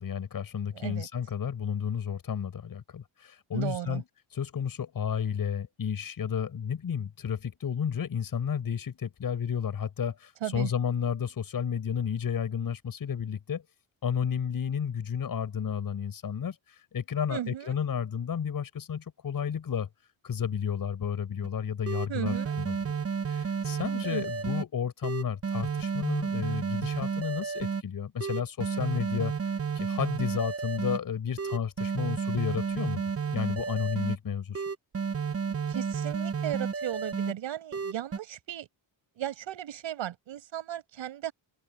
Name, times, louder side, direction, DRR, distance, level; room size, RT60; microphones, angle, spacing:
voice 1, 0.0-4.0 4.3-13.6 14.0-19.9 20.2-22.8 23.3-33.0 33.3-34.6, left 7 dB, 45° left, 7.9 m, -32 dB
voice 2, 0.7-1.1 3.5-4.0 10.4-10.7 17.3-17.8 22.1-22.5 24.0-24.2 35.5-38.7 39.2-41.3, right 12 dB, 70° right, 5.8 m, -36 dB
sound 1, 21.4-21.5 21.9-24.6 25.0-27.8 28.2-31.0 31.4-34.2 34.5-37.3 37.7-38.2, right 6 dB, 30° right, 1.1 m, -31 dB
open air
cardioid pair, 145°, 48 cm